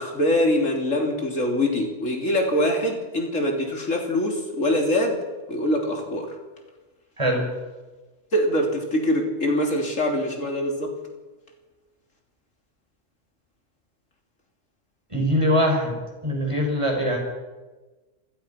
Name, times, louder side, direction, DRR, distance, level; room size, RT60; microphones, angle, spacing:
voice 1, 0.0-5.2 5.5-6.3 8.3-10.9, left 1 dB, 75° left, 1 dB, 3.8 m, -23 dB
voice 2, 15.1-17.2, equal, 25° right, 1 dB, 6.2 m, -22 dB
29.0 x 16.5 x 5.9 m, 1.2 s
omnidirectional pair, 1.3 m